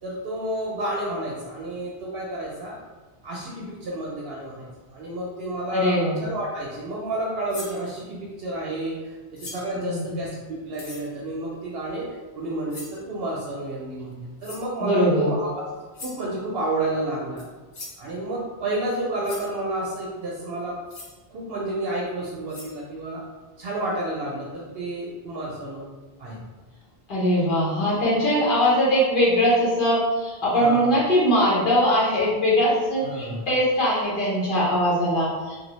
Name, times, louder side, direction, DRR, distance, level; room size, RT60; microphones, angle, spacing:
voice 1, 0.0-2.8 3.2-12.1 12.3-15.7 16.0-17.4 18.0-20.8 21.3-23.2 23.6-25.9 26.2-26.4 30.6-31.0 33.0-33.4, right 1 dB, 70° right, -4 dB, 0.8 m, -30 dB
voice 2, 5.7-6.2 9.7-10.2 14.8-15.3 27.1-35.6, equal, 55° left, -7 dB, 1.2 m, -21 dB
sound 1, 7.5-7.8 9.4-9.8 10.7-11.1 12.7-13.0 14.4-14.7 15.9-16.2 17.4-17.5 17.7-18.0 18.9-19.0 19.2-19.5 20.9-21.2 22.1-22.2 22.5-22.8, left 2 dB, 75° left, 1.0 m, -40 dB
3.3 x 2.3 x 3.0 m, 1.3 s
omnidirectional pair, 1.1 m